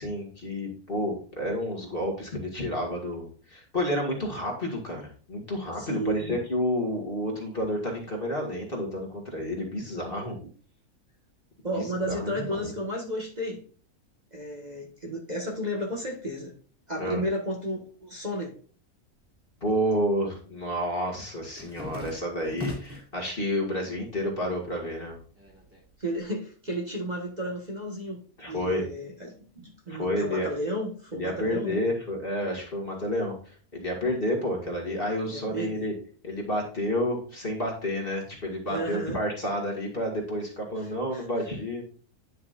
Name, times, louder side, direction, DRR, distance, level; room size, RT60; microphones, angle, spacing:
voice 1, 0.0-10.4 11.7-12.7 17.0-17.2 19.6-25.2 28.4-28.8 29.9-30.5 31.1-35.9 36.2-41.8, equal, 35° left, 2.3 m, -30 dB
voice 2, 5.8-6.3 11.6-13.6 14.3-16.5 16.9-18.5 26.0-31.9 35.2-35.8 38.7-39.2 41.1-41.2, equal, 30° right, 1.6 m, -33 dB
sound 1, 19.2-20.0 20.3-23.2 23.6-24.3 24.6-26.2, left 2 dB, 10° right, 2.5 m, -41 dB
10.0 x 5.7 x 2.5 m
omnidirectional pair, 1.6 m